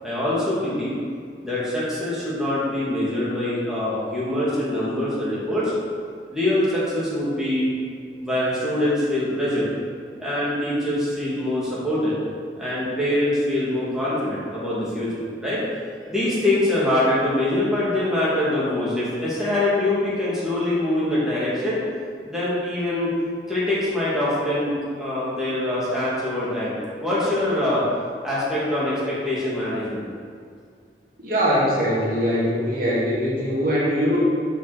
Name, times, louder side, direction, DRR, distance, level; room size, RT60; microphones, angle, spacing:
voice 1, 0.0-1.0 1.4-5.7 6.3-7.7 8.1-9.7 10.2-12.2 12.6-15.6 16.1-21.8 22.2-23.1 23.5-26.7 27.0-27.8 28.2-30.1, left 1 dB, 5° right, -9 dB, 2.3 m, -24 dB
voice 2, 31.2-34.2, equal, 55° right, -6 dB, 2.0 m, -22 dB
7.1 x 6.0 x 6.4 m, 2.1 s
head